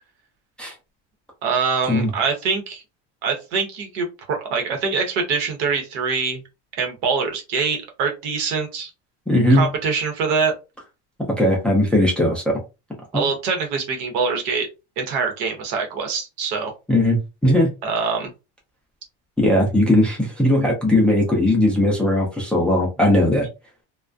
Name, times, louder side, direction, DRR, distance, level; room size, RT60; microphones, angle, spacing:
voice 1, 1.4-2.8 3.2-6.4 6.8-8.9 9.5-10.5 13.1-14.7 15.0-16.7 17.8-18.3, right 5 dB, 75° right, 4 dB, 0.9 m, -24 dB
voice 2, 9.3-9.7 11.4-12.6 13.1-13.3 16.9-17.7 19.4-23.5, left 1 dB, 5° left, -2 dB, 0.4 m, -18 dB
2.3 x 2.2 x 2.4 m, 0.28 s
cardioid pair, 155°, 31 cm